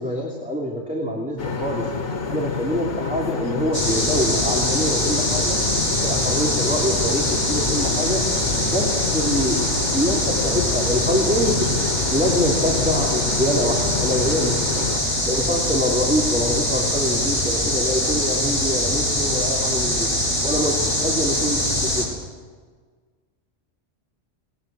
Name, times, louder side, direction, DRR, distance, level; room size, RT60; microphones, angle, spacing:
voice 1, 0.0-1.9 2.3-5.6 6.0-8.2 8.6-11.7 12.1-14.9 15.2-20.1 20.4-22.1, equal, 5° right, -3 dB, 3.1 m, -25 dB
sound 1, 1.4-15.0, left 5 dB, 85° left, 1.9 m, -28 dB
sound 2, 3.7-22.0, left 1 dB, 10° left, 5.9 m, -23 dB
21.0 x 20.0 x 7.8 m, 1.5 s
omnidirectional pair, 1.2 m